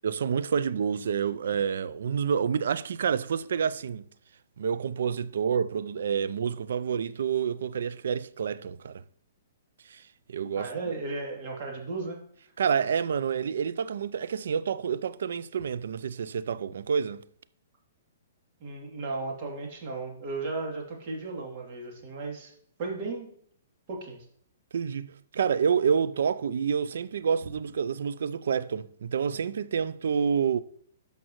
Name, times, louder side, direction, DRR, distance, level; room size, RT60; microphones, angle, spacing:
voice 1, 0.0-4.1 4.6-9.0 9.8-10.7 12.6-17.2 24.7-30.6, right 7 dB, 70° right, 0.4 m, -28 dB
voice 2, 10.6-12.2 18.6-22.5 22.8-23.3 23.9-24.2, right 3 dB, 45° right, 2.7 m, -35 dB
13.0 x 5.2 x 3.1 m
hypercardioid pair, 135°, 0 cm